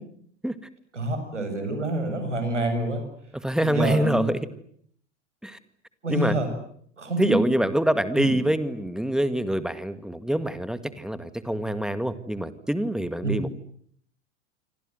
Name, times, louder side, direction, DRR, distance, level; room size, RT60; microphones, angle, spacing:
voice 1, 0.9-3.0 3.6-4.3 6.0-6.5 7.0-7.4 8.1-8.3 13.2-13.4, right 2 dB, 80° right, 8 dB, 7.9 m, -27 dB
voice 2, 3.4-4.4 5.4-5.6 6.1-6.4 7.2-13.5, right 1 dB, ahead, 13 dB, 2.0 m, -25 dB
28.0 x 25.5 x 8.0 m, 0.65 s
figure-of-eight pair, 85°, 36 cm